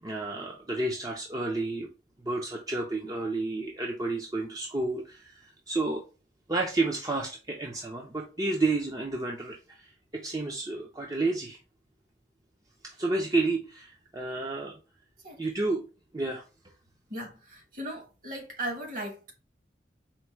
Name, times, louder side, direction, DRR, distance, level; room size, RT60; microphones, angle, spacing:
voice 1, 0.0-1.9 2.2-6.0 6.5-11.6 12.8-14.8 15.4-15.8 16.1-16.4, right 2 dB, 20° right, 0.5 m, -31 dB
voice 2, 17.1-19.3, right 1 dB, 50° right, 1.3 m, -37 dB
4.4 x 2.2 x 4.4 m
head